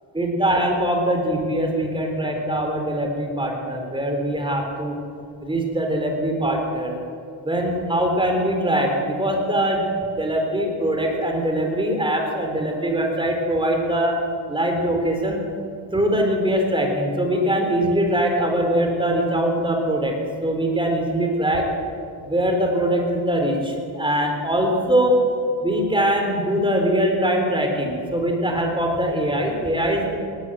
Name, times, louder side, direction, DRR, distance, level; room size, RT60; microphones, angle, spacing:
voice 1, 0.1-5.0 5.4-7.0 7.4-14.1 14.5-15.4 15.9-21.7 22.2-25.2 25.6-30.2, right 1 dB, 10° right, 2 dB, 4.2 m, -22 dB
19.5 x 18.5 x 7.9 m, 2.5 s
cardioid pair, 115°, 47 cm